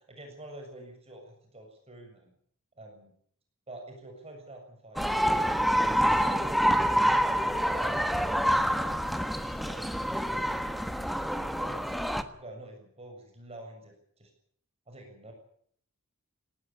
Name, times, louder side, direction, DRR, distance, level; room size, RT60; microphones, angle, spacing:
voice 1, 0.1-2.3 2.8-3.1 3.7-5.3 5.9-8.3 8.7-9.1 9.4-10.6 10.9-11.1 11.6-12.1 12.4-14.3 14.9-15.3, right 1 dB, 30° right, 3 dB, 7.1 m, -48 dB
sound 1, 5.0-12.2, equal, ahead, 1.4 m, -27 dB
19.5 x 18.0 x 10.0 m, 0.63 s
head